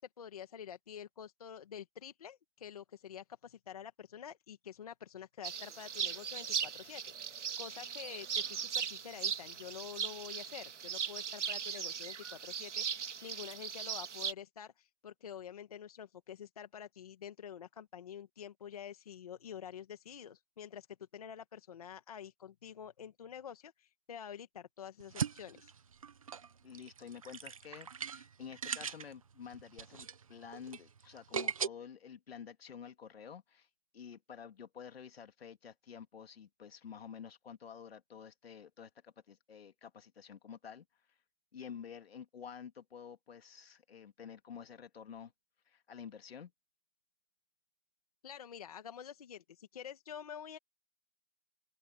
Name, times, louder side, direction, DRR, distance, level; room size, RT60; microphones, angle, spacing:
voice 1, 0.0-20.9 21.1-25.7 48.2-50.6, left 8 dB, 30° left, 1.4 m, -48 dB
sound 1, 5.4-14.3, right 7 dB, 70° right, 2.0 m, -39 dB
sound 2, 25.0-31.7, right 7 dB, 30° right, 0.9 m, -40 dB
voice 2, 26.6-33.7 33.9-40.8 41.5-45.3 45.7-46.5, left 7 dB, 55° left, 3.2 m, -50 dB
open air
hypercardioid pair, 180°, 37 cm